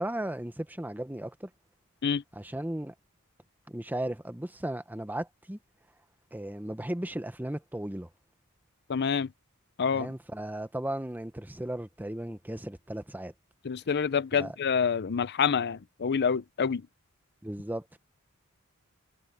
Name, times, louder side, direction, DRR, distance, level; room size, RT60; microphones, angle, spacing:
voice 1, 0.0-1.5 2.4-2.9 3.7-5.6 6.3-8.1 9.9-13.3 14.4-14.5 17.4-18.0, right 1 dB, 10° right, 1.0 m, -35 dB
voice 2, 8.9-9.3 9.8-10.1 13.6-16.8, left 6 dB, 50° left, 0.6 m, -27 dB
head